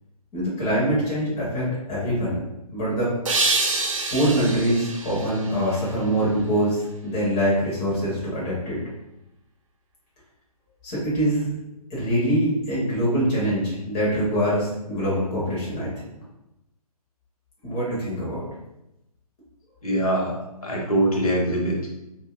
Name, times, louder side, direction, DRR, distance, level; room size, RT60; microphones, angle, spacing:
voice 1, 0.3-2.4 2.7-3.1 4.1-8.8 10.8-11.5 11.9-15.9 17.6-18.4, equal, 15° left, -8 dB, 0.5 m, -24 dB
sound 1, 3.3-6.4, right 3 dB, 55° right, 0.4 m, -27 dB
voice 2, 19.8-21.9, right 1 dB, 65° left, -1 dB, 0.7 m, -23 dB
2.6 x 2.1 x 2.2 m, 0.89 s
figure-of-eight pair, 135°, 20 cm